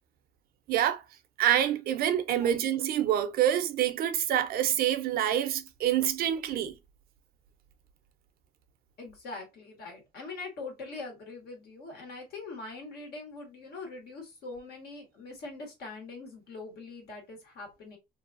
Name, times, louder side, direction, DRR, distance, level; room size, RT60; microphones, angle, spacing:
voice 1, 0.7-1.0 1.4-6.8, right 11 dB, 65° right, 0.6 m, -26 dB
voice 2, 2.3-2.6 9.0-18.0, left 3 dB, 70° left, 1.5 m, -43 dB
2.6 x 2.4 x 2.5 m
cardioid pair, 110°, 17 cm